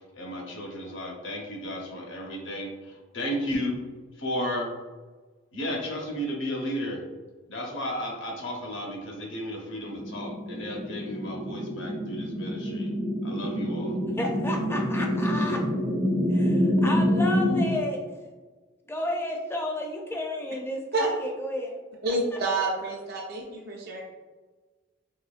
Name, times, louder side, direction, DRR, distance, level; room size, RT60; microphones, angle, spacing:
voice 1, 0.1-3.7 4.2-4.7 5.5-7.0 7.5-12.9 13.2-14.0, equal, 75° left, -1 dB, 0.8 m, -33 dB
sound 1, 9.8-17.7, equal, 80° right, 1.0 m, -27 dB
voice 2, 14.2-15.7 16.3-18.0 18.9-22.1, left 1 dB, 10° left, 1 dB, 0.4 m, -32 dB
voice 3, 22.0-24.0, right 2 dB, 55° right, -3 dB, 0.5 m, -28 dB
3.8 x 3.0 x 2.4 m, 1.3 s
head